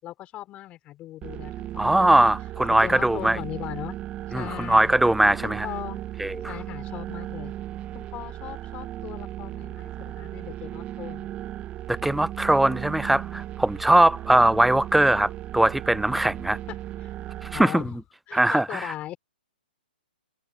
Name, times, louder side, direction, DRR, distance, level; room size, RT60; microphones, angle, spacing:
voice 1, 0.0-2.3 2.8-4.0 4.3-4.9 5.4-6.0 6.5-7.5 7.9-11.3 16.7-17.1 17.5-18.0 18.3-19.2, left 14 dB, 25° left, 4.9 m, -38 dB
sound 1, 1.2-17.6, right 13 dB, 20° right, 0.9 m, -36 dB
voice 2, 1.8-3.4 4.3-5.7 6.2-6.5 11.9-16.6 17.5-17.8 18.3-18.9, right 1 dB, ahead, 0.4 m, -21 dB
hypercardioid pair, 130°, 5 cm